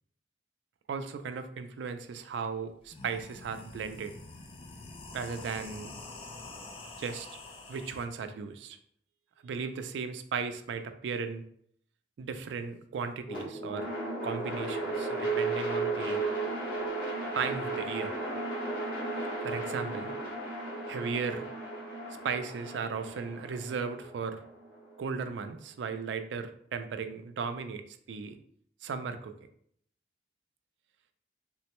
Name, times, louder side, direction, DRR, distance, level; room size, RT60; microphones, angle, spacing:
voice 1, 0.9-4.1 5.1-5.9 7.0-7.3 7.7-8.8 9.4-11.4 12.2-13.9 14.2-16.2 17.3-18.1 19.4-20.1 20.9-21.5 22.2-24.4 25.0-28.4 28.8-29.3, right 5 dB, 80° right, 9 dB, 0.3 m, -36 dB
sound 1, 2.3-2.4 2.8-8.0, left 3 dB, 30° left, 0.3 m, -46 dB
sound 2, 13.3-25.4, right 2 dB, 50° left, 1.0 m, -35 dB
3.6 x 2.1 x 2.9 m, 0.66 s
head